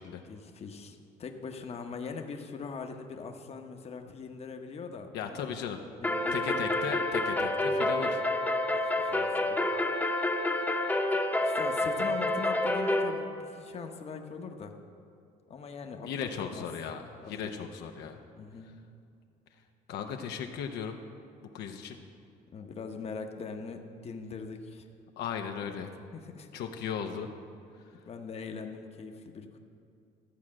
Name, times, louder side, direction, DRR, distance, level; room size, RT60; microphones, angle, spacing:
voice 1, 0.2-5.5 6.0-6.6 8.7-9.6 11.4-14.7 15.5-16.6 17.2-17.5 18.4-18.7 22.5-24.9 26.1-26.5 28.0-29.6, left 5 dB, 40° left, 5 dB, 0.9 m, -41 dB
voice 2, 5.1-5.8 6.3-8.2 16.0-18.2 19.9-21.0 21.5-22.0 25.2-25.9 26.5-27.3, left 7 dB, 80° left, 4 dB, 0.8 m, -36 dB
sound 1, 6.0-13.1, left 2 dB, 10° left, 0.9 m, -28 dB
13.5 x 4.8 x 7.5 m, 2.5 s
cardioid pair, 110°, 17 cm